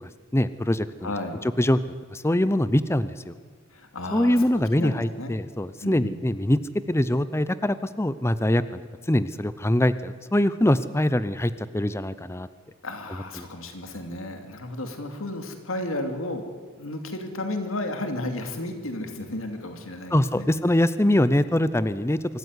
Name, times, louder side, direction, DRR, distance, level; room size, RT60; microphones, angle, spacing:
voice 1, 0.3-1.1 1.6-1.8 2.1-3.3 4.1-6.6 6.9-8.8 9.1-12.5 13.4-13.5 20.1-22.2, left 1 dB, 15° left, 14 dB, 0.6 m, -23 dB
voice 2, 1.0-1.4 3.7-4.5 4.7-5.3 5.8-6.2 12.8-16.5 16.7-20.5, left 1 dB, 85° left, 6 dB, 2.6 m, -33 dB
24.5 x 14.0 x 9.7 m, 1.5 s
head